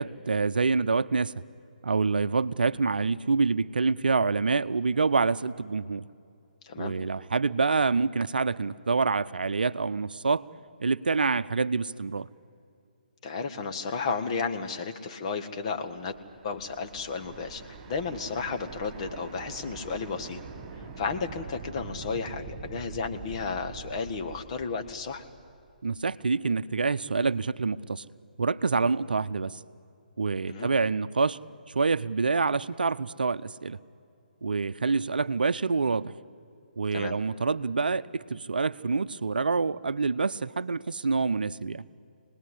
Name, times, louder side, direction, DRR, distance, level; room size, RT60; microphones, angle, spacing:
voice 1, 0.0-1.3 1.8-6.0 6.8-10.5 10.8-12.3 25.8-28.0 28.4-29.6 30.2-31.4 31.7-33.8 34.4-36.2 36.8-41.8, right 4 dB, 75° right, 14 dB, 0.6 m, -26 dB
voice 2, 6.6-6.9 13.2-16.1 16.4-20.4 21.0-25.2 30.5-30.7 36.9-37.2, left 5 dB, 40° left, 6 dB, 1.7 m, -33 dB
sound 1, 15.9-25.8, right 5 dB, 20° right, 4.7 m, -44 dB
26.0 x 19.5 x 9.9 m, 2.4 s
figure-of-eight pair, 140°, 5 cm